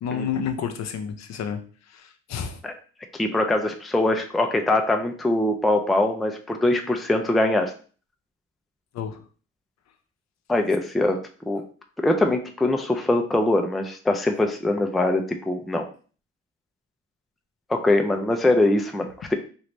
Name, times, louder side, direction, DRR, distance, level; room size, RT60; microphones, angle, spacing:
voice 1, 0.0-1.6 1.9-2.6 8.9-9.2, left 7 dB, 60° left, 6 dB, 0.6 m, -30 dB
voice 2, 3.2-7.7 10.5-11.2 11.5-11.6 12.0-15.8 17.7-19.4, left 2 dB, ahead, 4 dB, 0.4 m, -22 dB
3.1 x 2.6 x 3.0 m, 0.40 s
cardioid pair, 90°, 30 cm